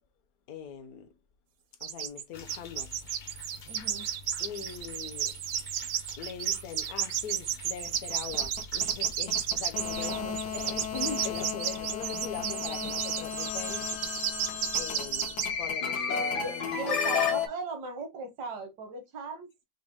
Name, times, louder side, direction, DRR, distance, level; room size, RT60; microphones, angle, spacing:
voice 1, 0.5-1.1 1.8-3.0 4.4-5.4 6.2-13.9 14.7-16.6, left 7 dB, 70° left, 1.2 m, -41 dB
sound 1, 1.8-2.2 2.5-15.5, right 10 dB, 65° right, 0.8 m, -32 dB
sound 2, 2.3-11.5, left 4 dB, 50° left, 0.6 m, -49 dB
voice 2, 3.7-4.1 10.0-10.5 12.1-12.9 16.4-19.5, right 3 dB, 85° right, 1.5 m, -38 dB
sound 3, 7.9-17.5, left 6 dB, 85° left, 1.6 m, -33 dB
6.2 x 2.1 x 3.4 m
omnidirectional pair, 1.7 m